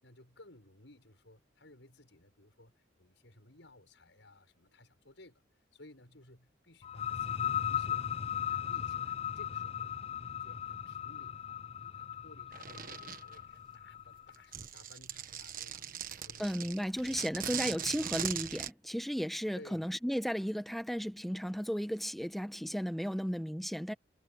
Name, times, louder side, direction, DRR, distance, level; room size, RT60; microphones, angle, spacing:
voice 1, 0.0-5.4 5.7-8.0 8.4-15.9 16.2-17.5 19.5-20.0, left 1 dB, 70° left, 6.9 m, -58 dB
sound 1, 6.8-14.3, left 9 dB, 30° left, 0.3 m, -37 dB
sound 2, 12.5-13.4 14.3-18.7, right 9 dB, 45° right, 1.4 m, -40 dB
voice 2, 16.4-23.9, equal, ahead, 1.2 m, -34 dB
head